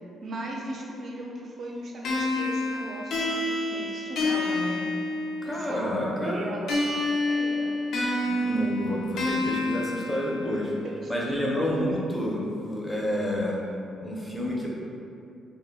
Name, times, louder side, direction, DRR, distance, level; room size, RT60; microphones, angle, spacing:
voice 1, 0.2-4.8 5.4-6.8 7.3-7.8 10.8-11.8, right 1 dB, 50° right, -2 dB, 0.5 m, -37 dB
sound 1, 2.0-5.7 6.7-10.7, left 2 dB, 75° left, 0.4 m, -28 dB
voice 2, 5.5-6.5 8.2-10.7 11.1-13.6 14.0-14.7, equal, 5° left, -4 dB, 0.6 m, -29 dB
2.2 x 2.1 x 3.5 m, 2.5 s
cardioid pair, 90°, 0 cm